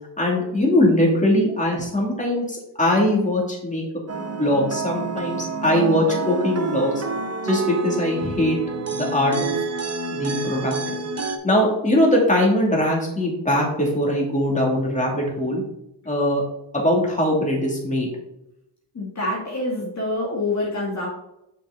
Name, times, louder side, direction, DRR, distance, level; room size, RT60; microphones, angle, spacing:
voice 1, 0.2-3.8 4.4-7.0 7.4-8.6 8.9-9.5 10.1-10.7 11.4-15.6 16.0-16.4 16.7-18.1, left 1 dB, 15° left, -2 dB, 2.8 m, -21 dB
sound 1, 4.1-11.4, right 3 dB, 35° right, 1.1 m, -28 dB
voice 2, 18.9-21.1, left 2 dB, 40° left, -3 dB, 2.2 m, -26 dB
6.8 x 6.1 x 4.0 m, 0.84 s
cardioid pair, 80°, 44 cm